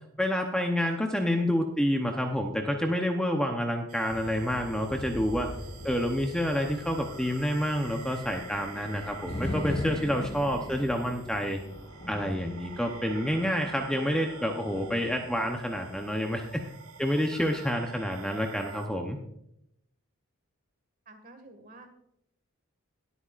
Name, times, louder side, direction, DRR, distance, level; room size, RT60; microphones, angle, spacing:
voice 1, 0.2-5.5 5.8-11.6 12.1-16.6 17.0-19.2, equal, 5° left, 3 dB, 0.7 m, -28 dB
sound 1, 3.9-18.9, right 4 dB, 85° right, 1.2 m, -48 dB
sound 2, 4.1-15.8, left 1 dB, 25° left, 1.3 m, -40 dB
voice 2, 21.1-21.9, right 2 dB, 40° right, 6 dB, 1.8 m, -50 dB
21.0 x 8.4 x 2.5 m, 0.78 s
head